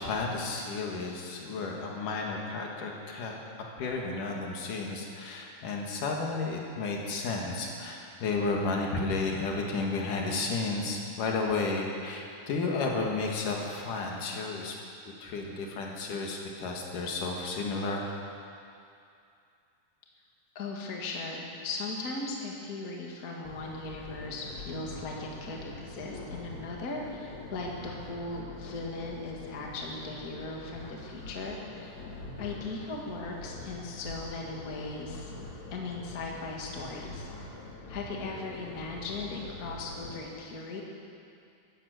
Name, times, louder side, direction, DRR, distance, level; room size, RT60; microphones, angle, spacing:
voice 1, 0.0-3.3 3.8-14.8 15.2-18.0, left 3 dB, 75° left, 0 dB, 3.2 m, -32 dB
voice 2, 20.6-32.0 32.4-35.3 35.7-37.3 37.9-40.8, left 3 dB, 35° left, -1 dB, 1.9 m, -38 dB
Robot Rumbling, 23.5-40.2, left 2 dB, 60° left, 3.2 m, -44 dB
14.5 x 12.0 x 7.8 m, 2.5 s
omnidirectional pair, 3.8 m